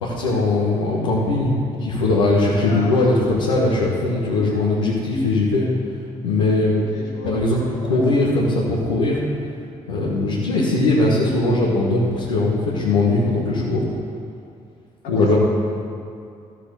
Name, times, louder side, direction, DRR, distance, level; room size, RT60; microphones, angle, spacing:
voice 1, 0.0-5.7 6.2-6.9 7.2-7.6 7.8-9.2 9.9-13.8 15.1-15.4, left 2 dB, 90° left, -8 dB, 1.5 m, -20 dB
voice 2, 2.6-3.1 6.7-7.4 15.0-15.4, left 2 dB, 70° left, -4 dB, 3.4 m, -33 dB
13.0 x 7.4 x 6.8 m, 2.5 s
hypercardioid pair, 45°, 16 cm